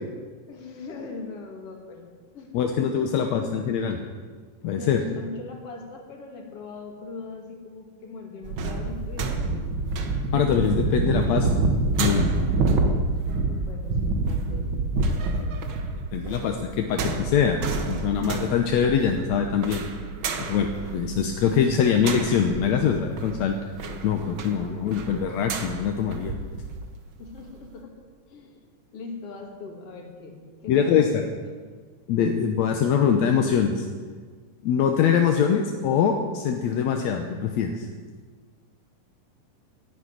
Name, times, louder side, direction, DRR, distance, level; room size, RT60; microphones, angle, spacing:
voice 1, 0.5-2.5 3.0-3.3 4.7-9.9 13.4-15.6 24.6-25.3 27.2-27.9 28.3-28.6 28.9-31.3, left 4 dB, 45° left, 2 dB, 2.9 m, -41 dB
voice 2, 2.5-4.0 4.6-5.0 10.3-11.6 12.0-12.3 15.4-15.5 16.1-16.6 16.9-19.8 20.5-23.6 24.0-26.4 30.7-31.2 32.1-33.9 34.6-37.9, left 7 dB, 65° left, 4 dB, 1.9 m, -23 dB
sound 1, 8.4-26.8 27.2-27.3, right 3 dB, 60° right, 1.3 m, -28 dB
12.0 x 11.0 x 9.8 m, 1.5 s
omnidirectional pair, 4.0 m